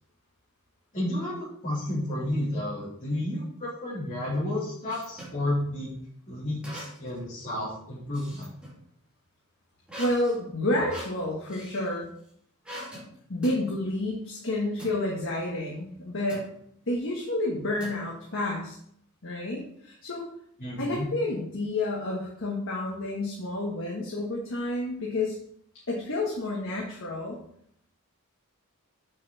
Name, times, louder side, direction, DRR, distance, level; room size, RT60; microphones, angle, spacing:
voice 1, 0.9-5.9 6.3-8.5 20.6-21.1, left 1 dB, 35° left, -10 dB, 3.0 m, -31 dB
sound 1, 4.3-5.4 6.6-7.2 7.6-8.8 9.9-11.9 12.6-13.1 13.4-13.6 14.8-15.0 16.3-16.6 17.8-18.4, equal, 5° right, 2.8 m, -43 dB
voice 2, 10.0-12.1 13.3-16.4 16.9-18.7 19.2-20.3 20.8-25.4 25.9-27.4, left 2 dB, 60° left, -3 dB, 1.6 m, -30 dB
7.7 x 6.4 x 4.1 m, 0.67 s
head